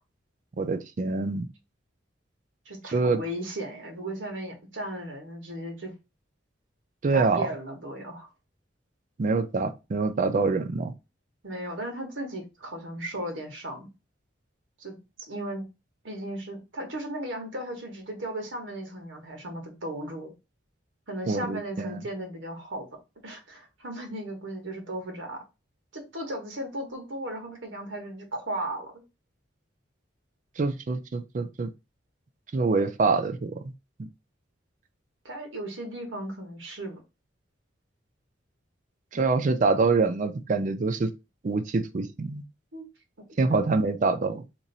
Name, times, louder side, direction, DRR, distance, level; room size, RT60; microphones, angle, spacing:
voice 1, 0.6-1.5 2.8-3.2 7.0-7.5 9.2-10.9 21.3-22.0 30.6-31.7 32.5-33.7 34.0-34.1 39.1-41.1 41.4-42.4 43.4-44.4, right 3 dB, 40° right, 0.4 m, -25 dB
voice 2, 2.6-5.9 7.1-8.3 11.4-13.9 14.8-15.6 16.0-20.3 21.1-22.9 23.2-25.4 25.9-29.0 35.2-37.0 42.7-42.9 43.5-43.7, right 1 dB, 80° right, 1.4 m, -36 dB
3.0 x 2.6 x 3.9 m
head